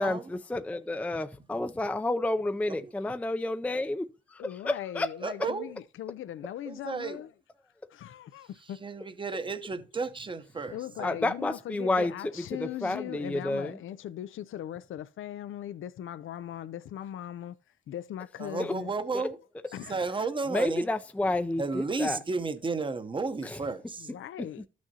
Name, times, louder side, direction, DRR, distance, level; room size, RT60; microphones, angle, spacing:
voice 1, 0.0-5.1 11.0-13.8 18.6-18.7 19.1-19.2 20.5-22.2 23.4-23.6, left 2 dB, 5° left, 0.4 m, -30 dB
voice 2, 4.4-7.3 7.9-8.8 10.7-17.6 17.9-19.0 19.7-20.3 24.0-24.7, left 11 dB, 80° left, 0.4 m, -39 dB
voice 3, 5.2-5.7 6.7-7.2 8.8-11.1 18.4-19.4 19.9-20.9 21.6-24.1, right 4 dB, 25° right, 0.8 m, -33 dB
13.0 x 6.3 x 2.8 m
wide cardioid pair, 135°, 20 cm